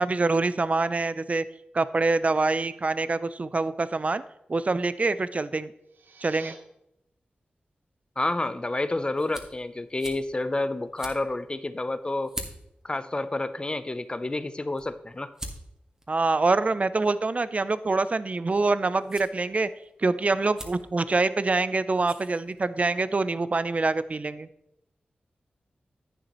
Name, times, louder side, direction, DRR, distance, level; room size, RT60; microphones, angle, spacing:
voice 1, 0.0-1.4 1.7-4.2 4.5-5.7 6.2-6.5 16.1-19.7 20.0-24.5, right 3 dB, 40° right, 15 dB, 0.5 m, -25 dB
sound 1, 5.7-6.6, right 5 dB, 90° right, 1.0 m, -47 dB
voice 2, 8.2-12.4 12.8-15.3, left 2 dB, 30° left, 12 dB, 0.6 m, -29 dB
sound 2, 8.2-23.0, right 1 dB, 15° right, 1.7 m, -47 dB
10.5 x 9.2 x 3.0 m, 0.84 s
cardioid pair, 60°, 3 cm